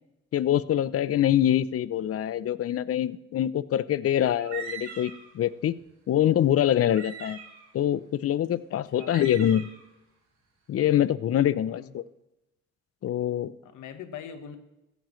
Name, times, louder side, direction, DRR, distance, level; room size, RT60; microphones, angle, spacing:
voice 1, 0.3-5.8 6.1-7.4 7.7-9.7 10.7-12.0 13.0-13.5, left 11 dB, 50° left, 17 dB, 0.6 m, -25 dB
sound 1, 4.4-5.3 5.8-5.9 6.8-7.6 8.4-8.5 8.9-9.8, right 5 dB, 65° right, 4.0 m, -41 dB
voice 2, 8.7-9.1 11.7-11.9 13.6-14.6, left 8 dB, 80° left, 8 dB, 1.4 m, -42 dB
15.0 x 12.0 x 3.2 m, 0.93 s
cardioid pair, 90°, 30 cm